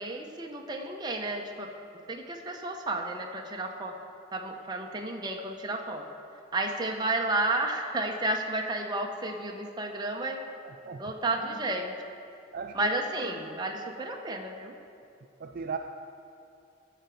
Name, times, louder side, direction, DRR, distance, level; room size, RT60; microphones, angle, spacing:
voice 1, 0.0-1.7 2.1-4.0 4.3-6.1 6.5-10.4 11.0-11.9 12.7-14.7, right 2 dB, 20° right, 2 dB, 0.8 m, -32 dB
voice 2, 10.6-11.0 12.5-12.9 14.3-14.4 15.4-15.8, right 5 dB, 45° right, 4 dB, 0.4 m, -37 dB
13.5 x 5.0 x 7.0 m, 2.5 s
head